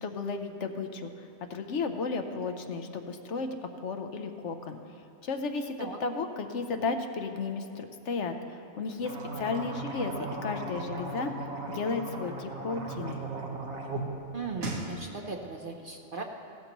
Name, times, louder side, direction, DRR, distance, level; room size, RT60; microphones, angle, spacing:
voice 1, 0.0-3.5 3.8-4.8 5.2-9.1 9.4-10.1 10.4-11.3 11.7-13.2, left 4 dB, 65° left, 6 dB, 1.0 m, -34 dB
sound 1, 9.0-14.0 14.3-14.9, right 2 dB, 80° right, 1.8 m, -37 dB
voice 2, 14.3-16.2, right 4 dB, 50° right, 2 dB, 0.7 m, -38 dB
16.0 x 13.0 x 3.0 m, 2.9 s
omnidirectional pair, 1.4 m